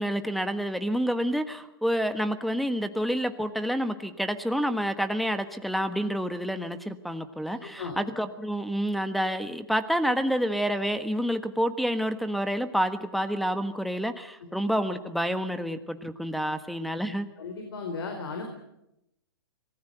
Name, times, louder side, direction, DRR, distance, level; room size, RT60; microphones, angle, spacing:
voice 1, 0.0-17.3, equal, ahead, 11 dB, 1.4 m, -28 dB
voice 2, 7.5-8.0 14.4-14.5 16.4-16.5 17.4-18.4, left 4 dB, 70° left, 4 dB, 4.5 m, -36 dB
26.0 x 19.0 x 8.0 m, 0.85 s
hypercardioid pair, 125°, 13 cm